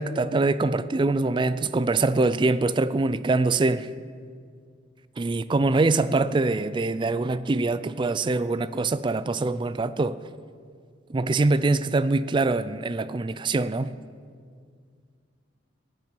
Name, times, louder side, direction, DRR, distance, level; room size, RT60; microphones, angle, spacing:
voice 1, 0.0-3.9 5.2-10.2 11.1-13.9, right 3 dB, 25° right, 0.3 m, -24 dB
16.0 x 9.5 x 5.2 m
head